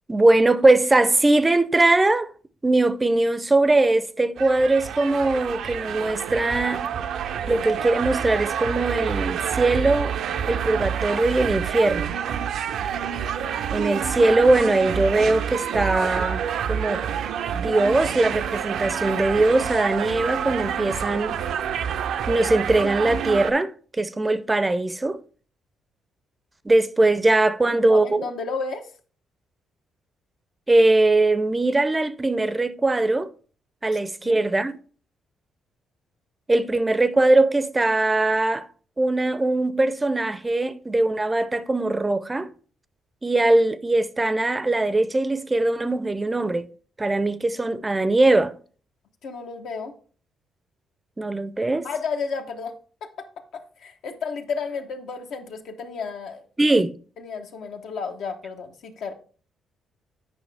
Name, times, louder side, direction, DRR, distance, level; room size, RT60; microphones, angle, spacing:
voice 1, 0.1-2.3 2.6-6.9 7.5-10.2 10.5-12.1 13.7-16.4 16.7-17.0 17.5-21.4 22.3-25.2 26.6-28.3 30.7-33.3 33.8-34.8 36.5-38.7 39.0-42.5 43.2-46.7 47.0-48.6 51.2-51.9 56.6-57.0, right 2 dB, 20° right, 0.5 m, -21 dB
sound 1, 4.4-23.5, right 8 dB, 75° right, 0.5 m, -28 dB
voice 2, 27.6-28.9 34.2-34.4 49.2-49.9 51.8-52.7 53.0-56.4 57.2-59.1, left 5 dB, 75° left, 1.0 m, -32 dB
8.7 x 5.0 x 3.4 m
cardioid pair, 90°, 0 cm